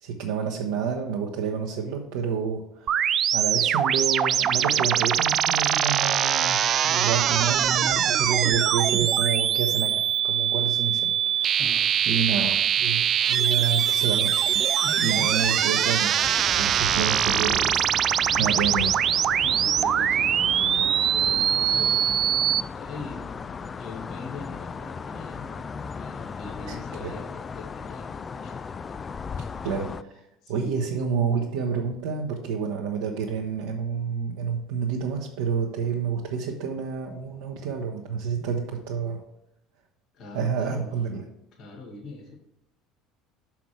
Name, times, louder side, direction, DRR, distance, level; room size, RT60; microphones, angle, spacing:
voice 1, 0.0-3.0 3.3-11.6 12.1-17.9 18.4-18.9 26.7-26.8 27.0-27.1 29.6-30.2 30.5-39.2 40.3-41.2, right 6 dB, 70° right, -1 dB, 0.9 m, -29 dB
sound 1, 2.9-22.6, right 9 dB, 45° right, 0.3 m, -23 dB
voice 2, 11.6-12.3 14.8-15.3 18.3-18.8 19.4-28.6 30.4-31.0 38.3-38.5 40.1-40.8 41.6-42.4, left 3 dB, 55° left, 0 dB, 2.0 m, -41 dB
sound 2, 16.2-30.0, left 5 dB, 30° left, 0.3 m, -36 dB
6.0 x 5.8 x 4.6 m, 0.84 s
hypercardioid pair, 70°, 0 cm